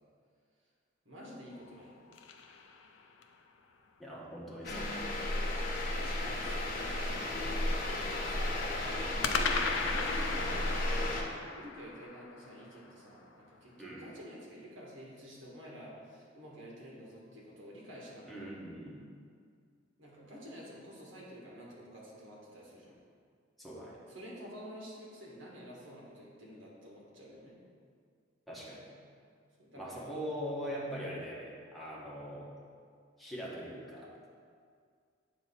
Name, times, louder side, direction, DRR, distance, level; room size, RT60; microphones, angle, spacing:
voice 1, 1.0-1.9 5.5-7.2 7.8-10.4 11.1-18.5 20.0-22.9 24.1-27.6 29.2-30.1 30.8-31.1, equal, 85° right, -4 dB, 1.6 m, -49 dB
sound 1, 1.5-3.4 9.2-13.5, left 5 dB, 80° left, 0.5 m, -38 dB
voice 2, 4.0-5.0 13.8-14.1 18.3-19.0 23.6-24.0 28.5-28.9 29.8-32.5 33.2-34.1, equal, ahead, -6 dB, 1.1 m, -42 dB
sound 2, 4.6-11.2, left 1 dB, 50° left, 0.9 m, -34 dB
7.8 x 2.9 x 5.6 m, 2.1 s
head